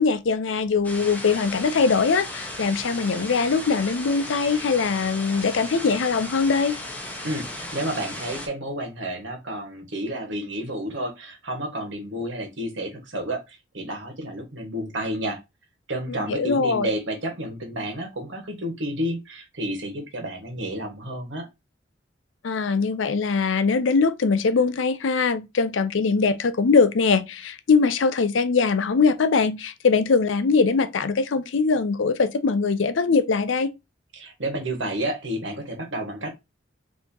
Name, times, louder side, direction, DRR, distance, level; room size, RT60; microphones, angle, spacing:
voice 1, 0.0-6.7 16.3-16.9 22.4-33.7, left 4 dB, 80° left, 0.5 m, -22 dB
sound 1, 0.8-8.5, left 1 dB, 10° left, 0.8 m, -36 dB
voice 2, 7.2-15.4 15.9-21.5 34.1-36.3, right 1 dB, 75° right, 1.4 m, -31 dB
4.3 x 2.9 x 2.7 m
head